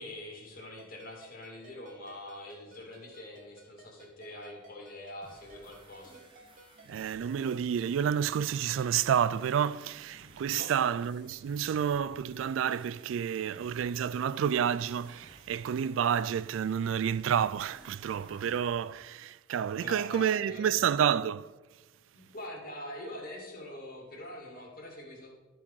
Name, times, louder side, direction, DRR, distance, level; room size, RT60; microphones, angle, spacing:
voice 1, 0.0-6.2 10.5-10.8 19.8-20.7 22.1-25.3, left 1 dB, 50° left, 2.3 m, -44 dB
Ringtone, 0.8-7.6, right 2 dB, 45° right, 1.1 m, -58 dB
sound 1, 5.2-18.8, right 1 dB, 25° right, 1.4 m, -57 dB
voice 2, 6.9-21.5, right 8 dB, 80° right, 0.3 m, -29 dB
12.5 x 4.6 x 5.5 m
head